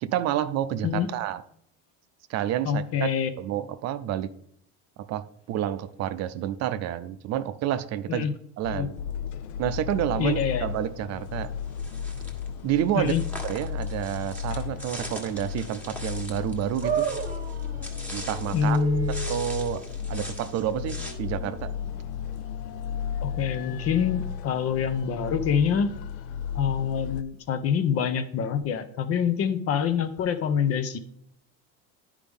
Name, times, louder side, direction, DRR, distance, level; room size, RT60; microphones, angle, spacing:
voice 1, 0.0-1.4 2.3-3.1 3.4-4.3 5.1-8.2 8.6-8.9 9.6-11.5 12.6-13.1 13.5-17.1 18.1-18.8 19.3-21.8, right 11 dB, 55° right, 12 dB, 0.6 m, -29 dB
voice 2, 2.6-3.3 8.1-8.3 8.7-8.9 10.2-10.7 13.0-13.2 18.5-19.2 23.2-25.9 26.5-31.0, left 7 dB, 50° left, 11 dB, 0.8 m, -26 dB
sound 1, 8.6-27.2, left 8 dB, 75° left, 0.6 m, -34 dB
sound 2, 11.7-12.5 13.0-18.8 19.1-21.1, equal, 5° left, 1.4 m, -41 dB
sound 3, 16.8-23.3, right 8 dB, 25° right, 1.0 m, -36 dB
10.5 x 4.9 x 3.5 m, 0.69 s
supercardioid pair, 115°, 31 cm